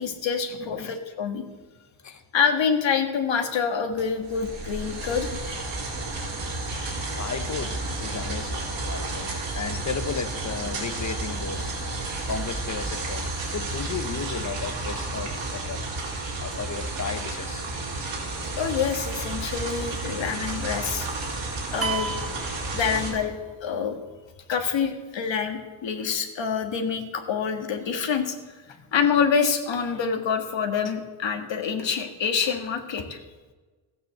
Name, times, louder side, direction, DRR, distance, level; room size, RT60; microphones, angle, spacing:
voice 1, 0.0-1.4 2.3-5.4 18.6-21.1 21.7-22.2 22.7-24.0 24.5-33.2, left 6 dB, 60° left, 5 dB, 1.9 m, -26 dB
voice 2, 0.5-1.0 2.0-2.2 6.6-13.3 13.5-15.9 16.4-17.7 28.7-28.8, left 5 dB, 35° left, 9 dB, 0.9 m, -35 dB
sound 1, 3.9-23.1, right 2 dB, 60° right, 4.4 m, -32 dB
sound 2, 21.8-23.5, right 5 dB, 30° right, 1.2 m, -33 dB
15.0 x 9.2 x 7.7 m, 1.3 s
wide cardioid pair, 175°, 49 cm